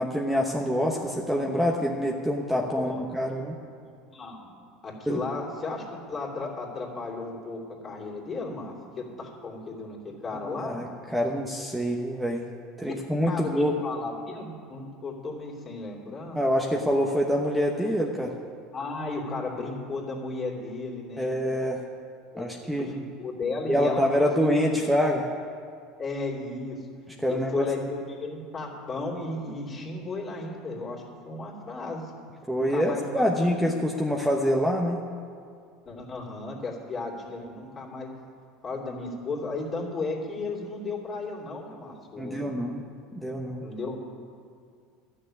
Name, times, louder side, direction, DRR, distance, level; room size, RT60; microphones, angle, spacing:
voice 1, 0.0-3.6 5.1-5.2 10.5-12.4 12.8-13.7 16.3-18.3 21.2-21.8 22.4-22.9 23.7-25.3 27.2-27.7 32.5-35.0 42.2-42.8 43.1-43.6, equal, 5° right, 0 dB, 1.0 m, -26 dB
voice 2, 2.7-3.4 4.1-4.5 4.8-10.8 13.3-16.4 18.7-21.3 22.3-24.8 26.0-26.9 27.3-32.1 32.7-33.6 35.8-38.1 38.6-42.5 43.6-44.0, left 3 dB, 30° left, -2 dB, 2.8 m, -35 dB
12.0 x 6.7 x 9.9 m, 2.3 s
supercardioid pair, 105°, 0 cm